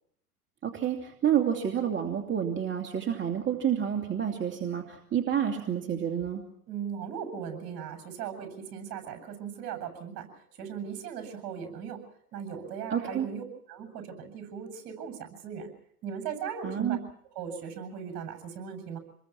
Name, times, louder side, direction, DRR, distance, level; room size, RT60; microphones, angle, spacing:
voice 1, 0.6-6.4 12.9-13.3 16.6-17.0, right 9 dB, 25° right, 3 dB, 2.7 m, -29 dB
voice 2, 6.7-12.0 12.3-15.7 16.0-17.0 17.3-19.0, right 7 dB, 50° right, 6 dB, 7.8 m, -38 dB
27.5 x 21.5 x 6.0 m, 0.68 s
hypercardioid pair, 105°, 46 cm